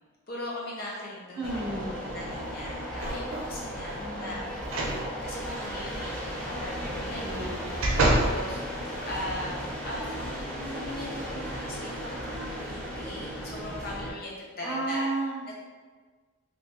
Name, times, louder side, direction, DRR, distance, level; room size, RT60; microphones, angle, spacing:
voice 1, 0.3-1.5 2.0-8.6 9.0-15.1 15.5-15.6, left 1 dB, 45° left, -3 dB, 0.5 m, -39 dB
voice 2, 1.3-2.3 3.9-4.5 7.2-7.7 14.6-15.5, right 2 dB, 15° right, -9 dB, 1.1 m, -33 dB
sound 1, 1.4-14.1, equal, 5° left, 0.8 m, -36 dB
sound 2, 3.0-3.5 4.6-5.0 5.4-5.5 7.1-8.4 9.0-9.1, right 1 dB, 80° right, 0.6 m, -27 dB
3.4 x 3.0 x 2.7 m, 1.5 s
head